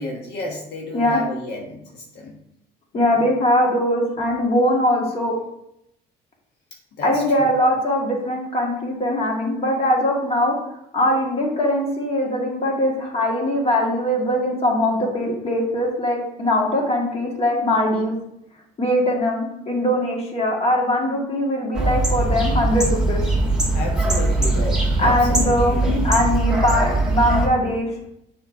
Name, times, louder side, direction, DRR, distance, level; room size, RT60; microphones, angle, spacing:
voice 1, 0.0-2.4 2.9-3.3 7.0-7.5 23.7-26.0, left 2 dB, 75° left, -1 dB, 1.3 m, -32 dB
voice 2, 2.9-5.3 7.0-10.6 10.9-18.1 18.8-23.2 25.0-27.9, left 1 dB, 35° left, 0 dB, 2.0 m, -21 dB
sound 1, 21.7-27.5, right 2 dB, 5° right, 1.8 m, -21 dB
6.8 x 4.4 x 5.2 m, 0.79 s
cardioid pair, 110°, 17 cm